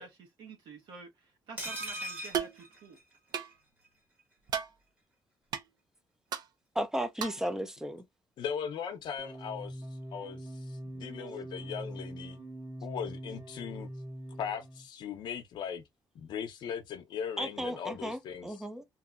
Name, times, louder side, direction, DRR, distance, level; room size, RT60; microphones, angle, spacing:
voice 1, 0.0-3.0, right 4 dB, 85° right, 1.1 m, -49 dB
sound 1, 1.6-3.5 3.8-3.9 4.2-4.3, right 1 dB, 20° right, 1.4 m, -40 dB
Empty soda can, 2.3-2.6 3.3-3.5 4.5-4.7 5.5-5.6 6.3-6.5 7.2-7.5, right 7 dB, 55° right, 0.6 m, -33 dB
voice 2, 6.8-8.0 17.4-18.8, equal, 5° right, 0.5 m, -34 dB
voice 3, 8.4-9.8 10.1-12.4 12.8-13.9 14.4-15.8 16.2-18.5, left 7 dB, 70° left, 0.6 m, -39 dB
sound 2, 9.2-14.9, right 1 dB, 40° right, 1.6 m, -43 dB
2.9 x 2.6 x 2.4 m
cardioid pair, 125°, 8 cm